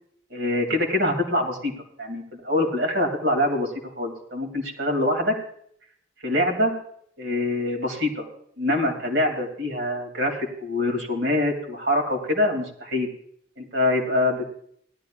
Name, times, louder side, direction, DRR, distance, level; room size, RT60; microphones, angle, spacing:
voice 1, 0.3-1.7 2.0-5.4 6.2-6.7 7.2-8.2 8.6-13.1 13.6-14.5, left 1 dB, 70° right, 1 dB, 3.1 m, -24 dB
18.0 x 12.0 x 2.5 m, 0.66 s
head